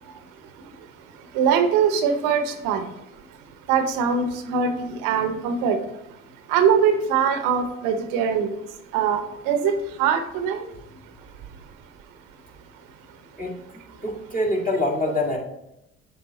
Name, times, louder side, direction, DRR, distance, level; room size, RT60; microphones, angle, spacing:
voice 1, 1.3-2.9 3.7-5.8 6.5-8.5 8.9-9.7 10.0-10.7, right 7 dB, 80° right, 8 dB, 0.8 m, -22 dB
voice 2, 14.0-15.4, left 1 dB, 25° left, -1 dB, 1.9 m, -25 dB
7.1 x 3.6 x 3.9 m, 0.86 s
hypercardioid pair, 60°, 32 cm